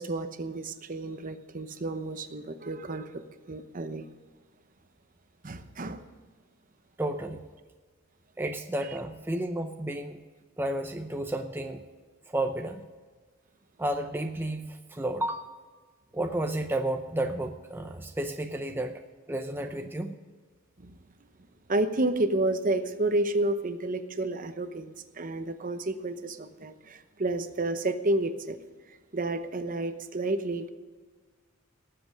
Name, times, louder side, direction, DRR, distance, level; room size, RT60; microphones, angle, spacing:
voice 1, 0.0-3.1 3.5-4.0 5.4-6.0 20.8-20.9 21.7-28.6 29.1-30.7, right 2 dB, 40° right, 9 dB, 0.8 m, -30 dB
voice 2, 7.0-7.4 8.4-10.2 10.6-11.8 12.3-12.8 13.8-15.5 16.1-19.0 19.3-20.2, right 1 dB, 10° right, 4 dB, 0.6 m, -32 dB
18.5 x 7.8 x 5.2 m, 1.4 s
head